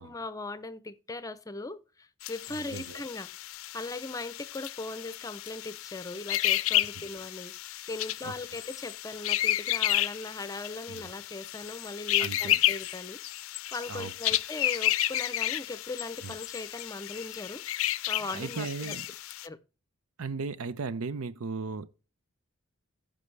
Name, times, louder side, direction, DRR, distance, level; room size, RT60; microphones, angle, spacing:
voice 1, 0.0-3.3 3.7-13.2 13.7-17.6 18.1-19.0 19.4-19.6, left 2 dB, 15° left, 0.6 m, -39 dB
sound 1, 2.2-19.5, left 14 dB, 70° left, 0.5 m, -32 dB
voice 2, 2.5-3.0 8.2-8.3 10.9-11.0 12.2-12.6 13.9-14.1 16.2-16.3 18.3-19.1 20.2-21.9, right 4 dB, 90° right, 0.6 m, -36 dB
15.0 x 5.3 x 3.3 m
head